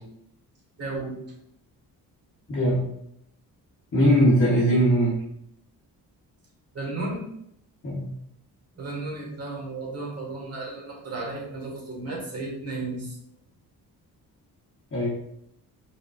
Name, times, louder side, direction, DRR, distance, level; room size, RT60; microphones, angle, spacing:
voice 1, 0.8-1.1 6.7-7.2 8.8-13.2, right 2 dB, 40° right, -3 dB, 1.7 m, -33 dB
voice 2, 2.5-2.9 3.9-5.2 7.8-8.1 14.9-15.1, equal, 35° left, -6 dB, 1.0 m, -20 dB
4.8 x 3.8 x 2.4 m, 0.75 s
cardioid pair, 135°, 38 cm